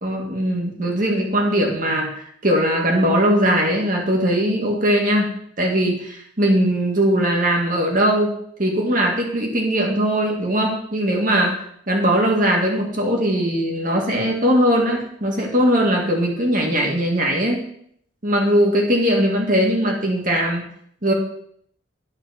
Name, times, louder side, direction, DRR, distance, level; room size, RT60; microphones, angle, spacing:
voice 1, 0.0-2.1 2.4-5.3 5.6-8.3 8.6-11.5 11.9-17.6 18.2-20.6 21.0-21.1, equal, 45° right, 0 dB, 1.9 m, -20 dB
9.8 x 4.1 x 5.8 m, 0.68 s
head